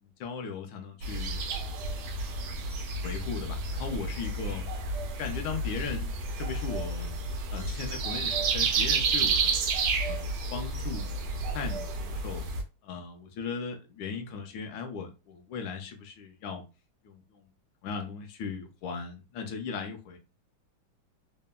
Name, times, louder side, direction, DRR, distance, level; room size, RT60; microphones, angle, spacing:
voice 1, 0.0-1.4 1.8-2.0 3.0-4.7 5.2-6.1 6.4-7.2 7.5-9.6 10.0-12.4 12.8-16.6 17.0-17.5 17.8-20.2, left 5 dB, 75° left, 1.2 m, -38 dB
sound 1, 1.0-12.6, right 3 dB, 75° right, 0.9 m, -31 dB
3.5 x 2.1 x 2.2 m
omnidirectional pair, 2.3 m